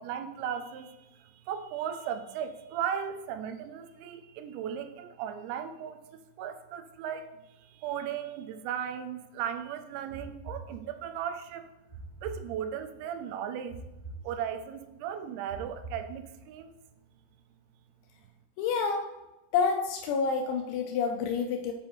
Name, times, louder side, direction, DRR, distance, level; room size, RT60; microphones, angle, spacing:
voice 1, 0.0-7.3 7.6-11.7 12.2-13.8 14.2-16.8, right 8 dB, 85° right, 8 dB, 2.7 m, -36 dB
sound 1, 10.1-11.2 11.9-13.0 13.7-14.8 15.5-16.6, right 3 dB, 40° right, 2.7 m, -45 dB
voice 2, 18.6-19.1 19.5-21.7, left 5 dB, 85° left, 3 dB, 2.9 m, -28 dB
7.7 x 4.7 x 3.0 m, 0.99 s
omnidirectional pair, 5.2 m